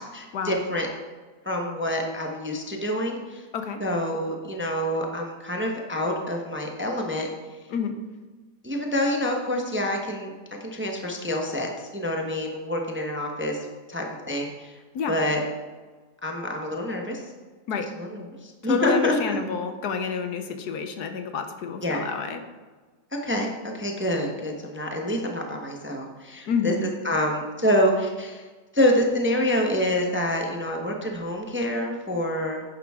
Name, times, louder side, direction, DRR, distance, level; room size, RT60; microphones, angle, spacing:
voice 1, 0.1-0.9 1.4-3.4 3.8-7.3 8.6-10.3 10.6-14.8 15.1-15.4 16.2-17.2 17.8-19.4 21.8-22.1 23.2-28.5 28.7-32.6, left 1 dB, 10° right, 1 dB, 0.9 m, -27 dB
voice 2, 18.6-22.4 26.5-26.8, left 6 dB, 70° left, 7 dB, 1.4 m, -28 dB
10.5 x 10.0 x 3.6 m, 1.3 s
omnidirectional pair, 1.8 m